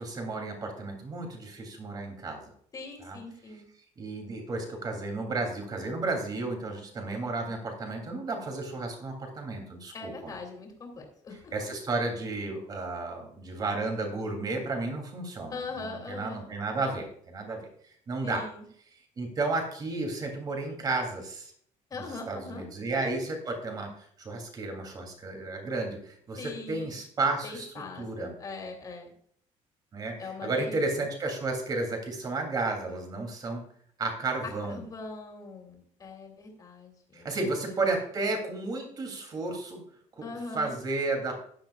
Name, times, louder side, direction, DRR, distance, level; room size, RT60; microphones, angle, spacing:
voice 1, 0.0-2.5 3.0-3.2 4.0-10.3 11.5-17.6 18.1-18.4 19.2-21.5 22.0-27.7 27.9-28.3 29.9-33.6 34.0-34.8 37.1-39.8 40.2-40.3 40.5-41.4, right 3 dB, 30° right, 3 dB, 3.1 m, -32 dB
voice 2, 2.7-3.6 9.9-11.7 15.5-16.4 18.2-18.6 21.9-22.6 26.4-27.0 27.4-29.1 30.2-30.8 34.4-37.3 40.2-40.8, left 3 dB, 25° left, 2 dB, 3.1 m, -41 dB
15.5 x 10.5 x 2.5 m, 0.63 s
cardioid pair, 165°, 13 cm